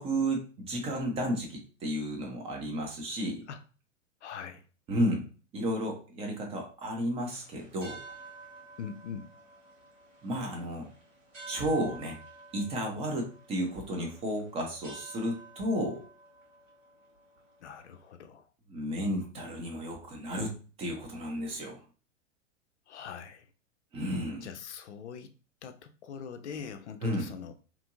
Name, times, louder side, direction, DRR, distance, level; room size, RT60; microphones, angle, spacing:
voice 1, 0.0-3.5 4.9-5.3 5.5-8.0 10.2-10.9 11.5-12.2 12.5-16.0 18.7-21.8 23.9-24.5 27.0-27.3, equal, 15° right, 1 dB, 0.5 m, -32 dB
voice 2, 4.2-4.6 8.8-9.3 17.6-18.5 22.9-23.5 24.4-25.3 25.6-27.6, left 7 dB, 60° left, 9 dB, 0.5 m, -42 dB
sound 1, 7.2-18.1, right 4 dB, 80° right, 1.4 m, -51 dB
2.9 x 2.5 x 2.5 m, 0.36 s
figure-of-eight pair, 95°, 39 cm